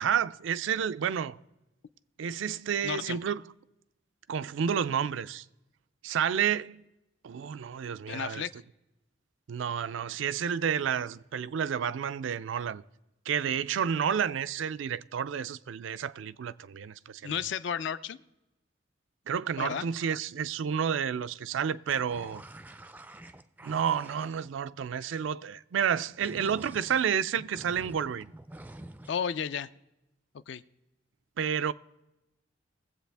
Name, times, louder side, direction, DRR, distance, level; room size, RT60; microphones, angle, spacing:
voice 1, 0.0-1.4 2.2-3.4 4.3-5.4 6.0-6.8 7.2-8.5 9.5-12.8 13.3-17.3 19.3-22.4 23.6-28.3 31.4-31.7, right 7 dB, 80° right, 0.4 m, -30 dB
voice 2, 2.8-3.2 8.1-8.5 17.2-18.2 19.6-19.9 29.1-29.7 30.3-30.6, left 7 dB, 65° left, 0.4 m, -33 dB
sound 1, 21.9-24.5 26.1-29.1, right 1 dB, 10° right, 0.3 m, -47 dB
20.0 x 7.8 x 3.4 m
head